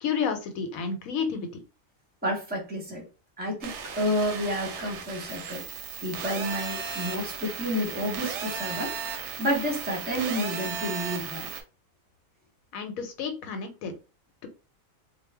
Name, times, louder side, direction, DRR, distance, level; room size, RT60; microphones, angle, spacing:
voice 1, 0.0-1.6 12.7-13.9, left 6 dB, 85° left, 7 dB, 1.1 m, -31 dB
voice 2, 2.2-3.0 3.4-8.9 9.4-11.5, equal, 10° right, -1 dB, 0.7 m, -30 dB
sound 1, 3.6-11.6, right 6 dB, 65° right, 0.8 m, -35 dB
2.4 x 2.0 x 3.2 m, 0.31 s
omnidirectional pair, 1.4 m